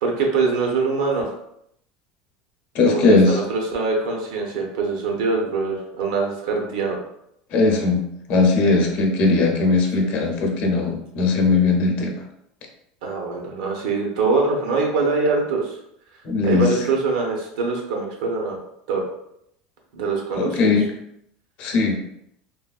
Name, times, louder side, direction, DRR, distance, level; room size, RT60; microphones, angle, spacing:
voice 1, 0.0-1.3 2.8-7.0 10.0-10.2 13.0-15.8 16.4-18.6 18.9-19.0 19.9-20.7, right 4 dB, 90° right, 1 dB, 0.8 m, -23 dB
voice 2, 2.7-3.3 7.5-8.0 8.3-12.2 16.2-16.7 20.4-20.9 21.6-22.0, left 3 dB, 55° left, 2 dB, 0.6 m, -19 dB
3.2 x 2.2 x 2.4 m, 0.76 s
cardioid pair, 145°, 3 cm